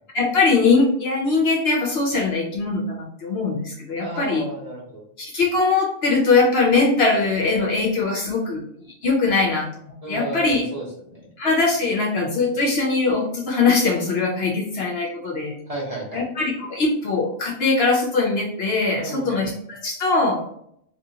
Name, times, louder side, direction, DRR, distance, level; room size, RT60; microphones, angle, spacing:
voice 1, 0.1-4.4 5.2-8.6 9.0-9.7 10.1-10.6 11.4-15.6 16.1-20.4, left 3 dB, 60° left, -1 dB, 0.8 m, -21 dB
voice 2, 4.0-5.0 10.0-11.3 15.7-16.3 19.0-19.5, right 1 dB, 35° right, -6 dB, 1.0 m, -33 dB
2.9 x 2.7 x 2.7 m, 0.69 s
omnidirectional pair, 1.3 m